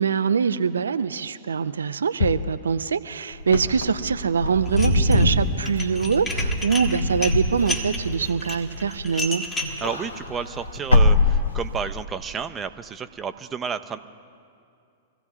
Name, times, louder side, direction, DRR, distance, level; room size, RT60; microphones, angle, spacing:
voice 1, 0.0-9.4, right 6 dB, 80° right, 10 dB, 0.4 m, -24 dB
sound 1, 2.2-3.6, left 7 dB, 65° left, 0.3 m, -30 dB
Wind / Car, 3.4-9.2 9.6-12.0, left 2 dB, 85° left, 1.0 m, -23 dB
Dishes pots and pans, 4.7-5.3 5.6-9.8, left 2 dB, 20° left, 1.8 m, -31 dB
voice 2, 9.8-14.0, right 6 dB, 20° right, 9 dB, 0.6 m, -31 dB
25.5 x 15.0 x 2.4 m, 2.4 s
figure-of-eight pair, 105°, 0 cm